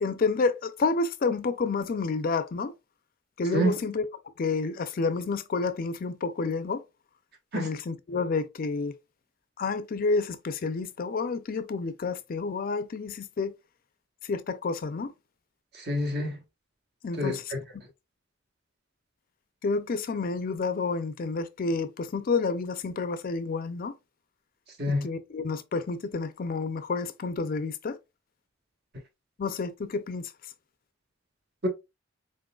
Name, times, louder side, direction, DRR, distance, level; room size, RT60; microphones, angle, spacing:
voice 1, 0.0-2.7 3.4-4.1 4.4-6.8 7.5-8.9 9.6-13.5 14.2-15.1 17.0-17.5 19.6-23.9 24.9-28.0 29.4-30.3, left 4 dB, 45° left, 0.4 m, -29 dB
voice 2, 15.7-16.4 17.2-17.6 24.8-25.1 31.6-31.7, equal, 55° right, 1.2 m, -27 dB
3.9 x 3.8 x 2.2 m
head